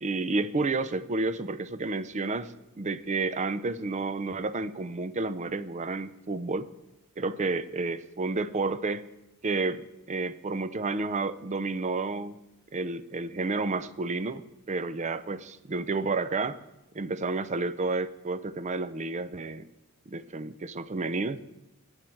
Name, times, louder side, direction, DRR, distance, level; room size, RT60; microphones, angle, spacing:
voice 1, 0.0-6.7 7.2-9.1 9.4-12.4 12.7-16.6 16.9-19.7 20.1-21.4, right 3 dB, 35° right, 14 dB, 0.5 m, -31 dB
15.5 x 9.0 x 4.5 m, 0.93 s
head